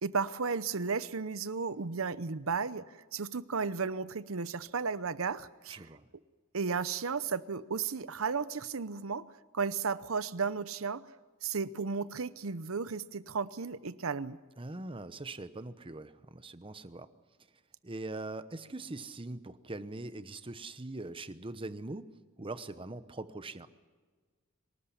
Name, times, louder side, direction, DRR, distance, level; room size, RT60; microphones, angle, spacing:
voice 1, 0.0-2.8 3.1-5.8 6.5-9.3 9.5-11.0 11.4-14.4, right 5 dB, 75° right, 15 dB, 0.8 m, -34 dB
voice 2, 5.7-6.0 14.6-17.1 17.8-23.7, right 2 dB, 25° right, 12 dB, 0.9 m, -42 dB
25.0 x 13.0 x 10.0 m, 1.4 s
head